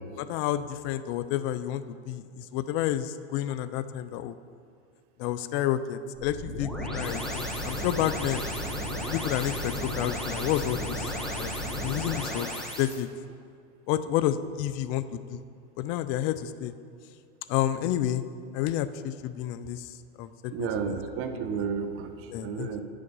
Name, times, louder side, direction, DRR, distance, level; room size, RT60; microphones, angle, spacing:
voice 1, 0.2-4.3 5.2-8.4 9.1-11.1 11.4-11.5 11.8-13.1 13.9-15.4 15.8-16.7 17.5-18.2 18.5-19.9 20.2-21.0 22.3-22.7, left 12 dB, 35° left, 13 dB, 0.4 m, -30 dB
sound 1, 6.2-13.0, equal, ahead, 1.2 m, -33 dB
voice 2, 20.5-22.8, right 6 dB, 35° right, 7 dB, 0.9 m, -32 dB
9.6 x 7.0 x 5.3 m, 2.3 s
hypercardioid pair, 120°, 38 cm